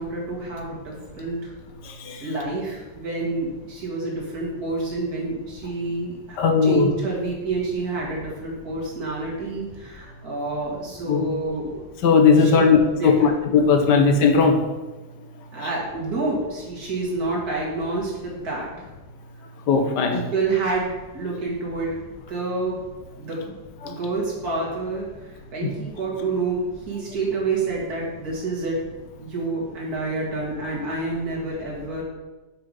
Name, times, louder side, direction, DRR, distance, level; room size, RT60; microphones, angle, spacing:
voice 1, 0.0-1.5 2.2-11.8 12.4-13.3 15.5-18.9 20.1-20.9 21.1-21.9 22.3-22.8 23.2-23.5 23.8-28.8 29.2-32.0, right 3 dB, 65° right, -4 dB, 2.4 m, -28 dB
voice 2, 1.8-2.2 6.4-6.9 11.1-11.2 12.0-14.6 19.7-20.3 23.8-23.9 25.6-25.7, left 5 dB, 90° left, 4 dB, 1.5 m, -18 dB
5.7 x 5.0 x 5.3 m, 1.2 s
omnidirectional pair, 1.8 m